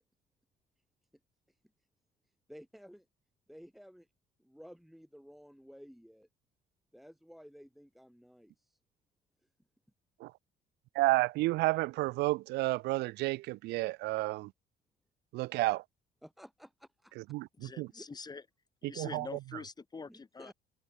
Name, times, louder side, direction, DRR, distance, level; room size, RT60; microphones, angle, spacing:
voice 1, 2.5-3.1 3.5-4.1 4.4-6.3 6.9-8.8 16.2-17.1 17.8-18.1 20.1-20.5, equal, ahead, 2.1 m, -54 dB
voice 2, 11.0-14.5 15.3-15.8 17.3-17.9 18.8-19.3, right 20 dB, 80° right, 0.5 m, -31 dB
voice 3, 17.6-18.4 18.8-20.5, left 4 dB, 25° left, 2.9 m, -45 dB
cardioid pair, 110°, 17 cm